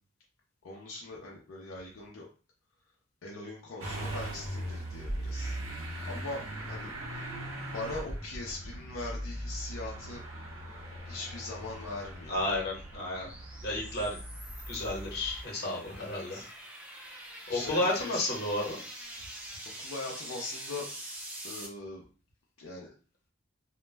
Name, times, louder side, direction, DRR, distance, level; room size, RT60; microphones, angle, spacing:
voice 1, 0.6-2.3 3.2-5.6 6.1-6.4 6.7-7.3 7.7-10.2 11.0-12.4 16.0-16.5 17.5-18.2 19.8-20.9 21.4-22.0 22.6-22.9, left 2 dB, 80° left, -3 dB, 0.5 m, -41 dB
Motor vehicle (road) / Engine starting, 3.8-15.4, right 1 dB, 75° right, 0.7 m, -40 dB
sound 1, 10.3-21.7, right 1 dB, 5° right, 0.3 m, -46 dB
voice 2, 12.3-13.3 13.6-14.2 14.7-16.4 17.0-18.8, left 1 dB, 50° left, -2 dB, 0.9 m, -32 dB
2.2 x 2.0 x 3.2 m, 0.37 s
head